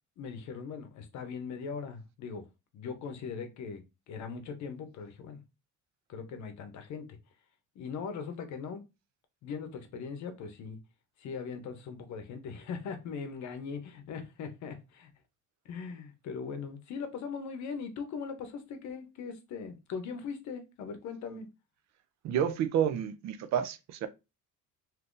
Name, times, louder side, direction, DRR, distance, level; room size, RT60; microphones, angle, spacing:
voice 1, 0.2-2.4 2.7-5.4 6.1-7.1 7.7-8.8 9.4-10.8 11.2-15.1 15.6-21.5, left 5 dB, 65° left, 0.7 m, -40 dB
voice 2, 22.2-24.1, right 9 dB, 60° right, 0.5 m, -30 dB
2.7 x 2.5 x 3.6 m
cardioid pair, 165°, 31 cm